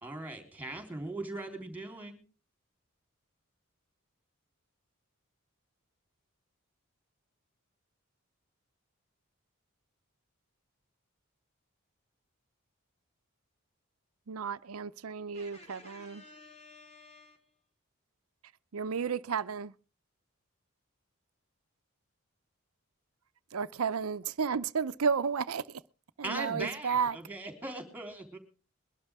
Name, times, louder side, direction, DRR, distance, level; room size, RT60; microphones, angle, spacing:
voice 1, 0.0-2.2 26.2-28.4, right 2 dB, 10° right, 3.6 m, -39 dB
voice 2, 14.3-16.2 18.7-19.7 23.5-25.8 26.2-27.2, right 6 dB, 90° right, 0.6 m, -32 dB
voice 3, 15.3-17.7, left 2 dB, 30° left, 4.1 m, -54 dB
22.0 x 12.0 x 3.5 m
head